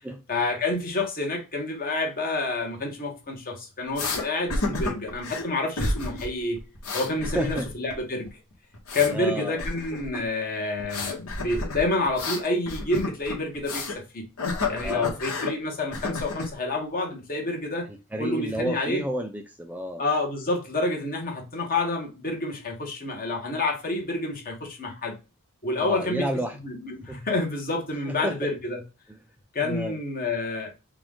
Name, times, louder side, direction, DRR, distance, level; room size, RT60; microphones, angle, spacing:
voice 1, 0.3-6.6 6.9-8.4 8.9-14.3 14.7-17.9 18.2-19.0 20.0-25.2 25.6-26.3 26.6-28.8 29.5-30.7, left 2 dB, 40° left, 1.4 m, -28 dB
sound 1, 4.0-4.2 4.5-5.5 5.8-6.3 6.6-7.9 8.2-9.2 9.6-10.2 10.8-14.0 14.4-15.5 15.9-16.5, left 3 dB, 70° left, 1.5 m, -30 dB
voice 2, 7.2-7.7 9.1-9.6 14.8-15.2 17.9-20.0 25.8-26.6 27.1-27.2 28.1-28.5 29.6-30.0, right 1 dB, 5° right, 0.3 m, -31 dB
4.7 x 2.5 x 3.6 m
head